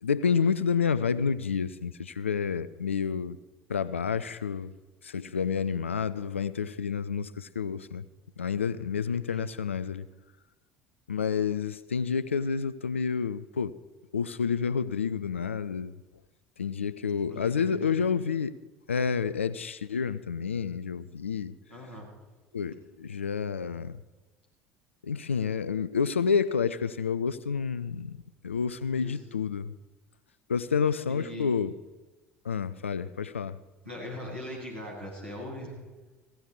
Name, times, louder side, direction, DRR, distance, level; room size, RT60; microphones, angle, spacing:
voice 1, 0.0-3.4 3.7-4.7 5.0-8.1 8.4-10.1 11.1-13.8 14.1-16.0 16.6-18.5 18.9-21.5 22.5-24.0 25.0-29.7 30.5-31.7 32.4-33.6, left 6 dB, 80° left, 0.5 m, -29 dB
voice 2, 17.3-18.1 21.7-22.1 28.9-29.2 31.1-31.5 33.8-35.7, left 1 dB, 85° right, 7.2 m, -40 dB
17.5 x 15.5 x 4.7 m
figure-of-eight pair, 65°, 7 cm